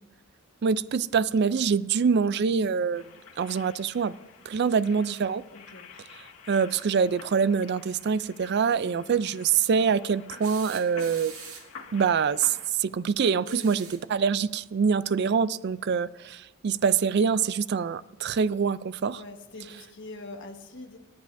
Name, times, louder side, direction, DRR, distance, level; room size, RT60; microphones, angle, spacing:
voice 1, 0.6-3.0 3.4-4.2 4.5-5.4 6.5-11.3 11.9-19.2, right 6 dB, 50° right, 17 dB, 0.4 m, -25 dB
sound 1, 2.9-12.7, left 6 dB, 90° left, 1.9 m, -49 dB
voice 2, 5.5-5.9 8.8-9.3 13.4-13.8 19.1-21.0, left 2 dB, 55° left, 2 dB, 1.3 m, -44 dB
sound 2, 10.4-11.8 13.4-14.1 15.8-15.9 17.4-17.5, right 7 dB, 75° right, 1.6 m, -44 dB
28.0 x 10.5 x 2.6 m, 1.1 s
head